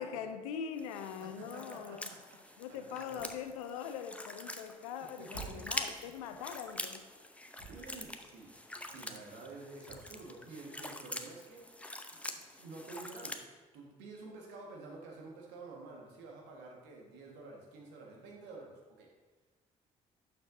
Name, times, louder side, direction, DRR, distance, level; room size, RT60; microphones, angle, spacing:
voice 1, 0.0-2.1 2.6-7.1, left 7 dB, 75° left, 8 dB, 0.5 m, -42 dB
sound 1, 0.8-13.4, left 1 dB, 5° left, 0.7 m, -45 dB
voice 2, 1.2-3.3 5.2-5.9 7.7-8.5 8.9-19.1, right 3 dB, 65° right, 0 dB, 1.6 m, -50 dB
Walk footsteps, 2.4-2.5 3.1-4.6 4.9-7.2 7.6-11.6 11.9-12.0, right 3 dB, 85° right, 2.3 m, -55 dB
11.5 x 6.8 x 2.7 m, 1.3 s
figure-of-eight pair, 45°, 19 cm